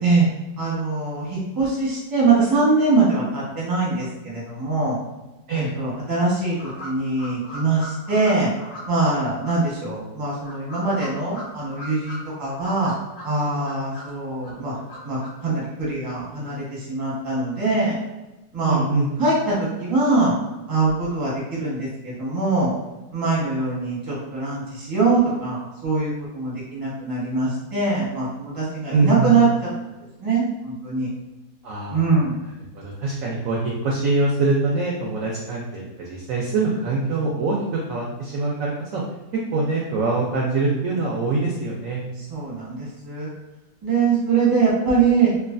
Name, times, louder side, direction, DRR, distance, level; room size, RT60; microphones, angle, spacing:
voice 1, 0.6-5.0 5.5-8.5 8.9-12.9 13.2-14.7 15.0-18.0 18.5-18.8 19.2-20.3 20.7-22.7 23.1-29.5 30.0-31.1 31.9-32.3 42.2-43.3 43.8-45.3, right 3 dB, 25° right, -6 dB, 0.5 m, -22 dB
sound 1, 6.6-9.1 9.4-9.5 10.3-12.2 12.4-14.1 14.4-15.3, left 1 dB, 60° left, 0.8 m, -39 dB
voice 2, 18.7-19.1 28.9-29.3 31.6-32.0 32.7-37.6 37.9-39.0 39.5-42.0, right 3 dB, 80° right, -3 dB, 0.7 m, -23 dB
3.1 x 2.3 x 2.5 m, 1.0 s
omnidirectional pair, 1.9 m